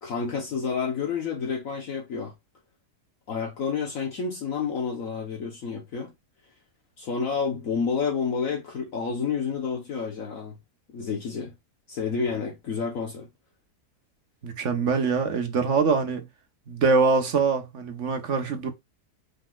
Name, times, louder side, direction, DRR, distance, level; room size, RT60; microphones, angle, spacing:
voice 1, 0.0-2.3 3.3-6.1 7.0-10.5 10.9-11.5 11.9-13.3, left 5 dB, 60° left, 1.4 m, -29 dB
voice 2, 14.4-16.3 16.7-18.7, right 4 dB, 55° right, 1.2 m, -24 dB
5.1 x 4.0 x 2.3 m
omnidirectional pair, 1.6 m